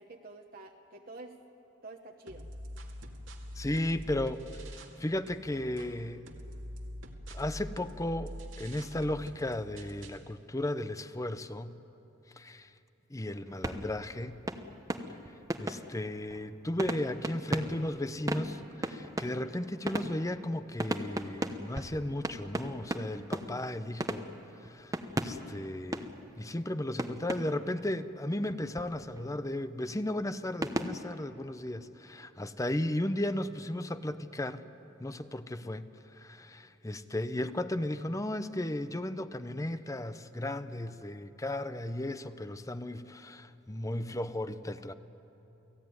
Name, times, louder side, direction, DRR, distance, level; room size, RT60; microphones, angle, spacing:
voice 1, 0.0-1.4 1.8-2.5, right 2 dB, 50° right, 2 dB, 1.2 m, -48 dB
sound 1, 2.3-5.0 5.3-10.3, equal, 85° right, 2.2 m, -45 dB
voice 2, 3.6-6.3 7.3-11.8 12.4-12.7 13.1-14.4 15.6-24.3 24.6-26.1 26.4-34.6 35.0-44.9, left 1 dB, 15° left, 12 dB, 0.7 m, -35 dB
sound 2, 13.5-26.7 27.0-27.9 28.4-29.4 30.6-31.0, right 1 dB, 15° right, 1.0 m, -37 dB
29.0 x 17.5 x 9.6 m, 2.9 s
head